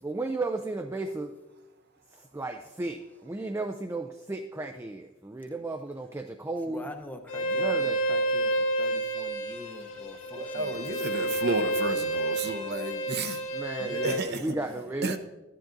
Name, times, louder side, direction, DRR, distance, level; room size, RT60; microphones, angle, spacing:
voice 1, 0.0-1.3 2.1-6.9 7.4-8.0 13.5-15.2, right 2 dB, 15° right, 0.3 m, -34 dB
voice 2, 6.7-11.5 14.4-14.9, left 1 dB, 10° left, 0.7 m, -45 dB
Bowed string instrument, 7.3-14.2, right 1 dB, 85° left, 1.9 m, -30 dB
voice 3, 10.3-13.4 13.8-14.4 15.0-15.2, right 3 dB, 50° right, 0.7 m, -32 dB
13.5 x 10.5 x 2.6 m
head